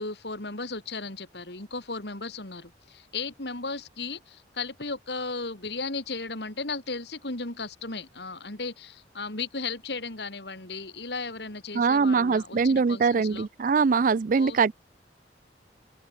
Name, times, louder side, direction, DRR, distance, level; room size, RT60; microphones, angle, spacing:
voice 1, 0.0-13.5 14.3-14.7, left 3 dB, 70° left, 3.5 m, -35 dB
voice 2, 11.7-14.7, right 5 dB, 50° right, 0.4 m, -22 dB
open air
head